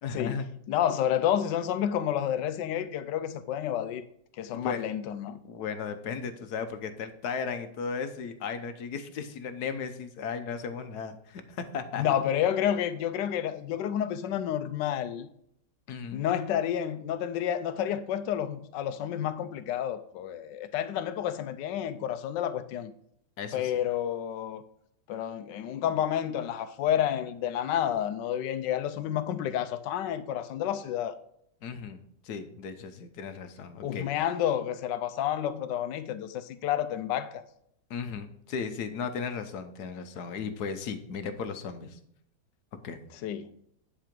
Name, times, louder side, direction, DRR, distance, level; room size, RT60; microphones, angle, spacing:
voice 1, 0.0-0.5 4.5-4.9 5.4-12.0 15.9-16.2 23.4-23.7 31.6-32.0 32.2-34.1 37.9-42.0 42.8-43.0, left 6 dB, 65° left, 1.4 m, -36 dB
voice 2, 0.7-4.0 4.4-5.4 12.0-15.3 16.1-22.9 23.5-24.6 25.1-31.2 33.8-37.4 43.2-43.5, left 10 dB, 85° left, 1.3 m, -30 dB
10.5 x 4.9 x 5.2 m
omnidirectional pair, 1.9 m